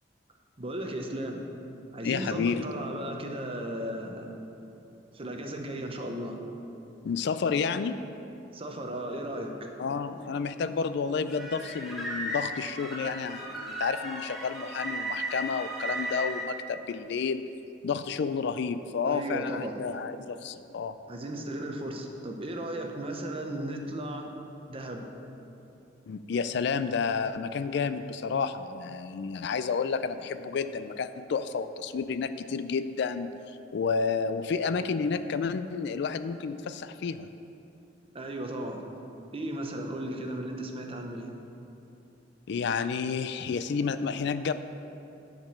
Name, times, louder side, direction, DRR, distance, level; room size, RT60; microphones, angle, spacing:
voice 1, 0.6-1.4 1.9-4.4 5.1-6.4 8.5-9.7 19.0-19.8 21.1-24.3 24.7-25.1 38.1-38.8 39.3-41.4, right 1 dB, 30° right, 3 dB, 0.9 m, -35 dB
voice 2, 2.0-2.6 7.0-8.0 9.8-17.5 17.8-20.9 26.1-33.3 33.7-37.3 42.5-44.5, left 5 dB, 65° left, 12 dB, 0.4 m, -30 dB
sound 1, 11.3-16.4, right 1 dB, ahead, 1.3 m, -35 dB
10.5 x 5.1 x 6.7 m, 2.8 s
head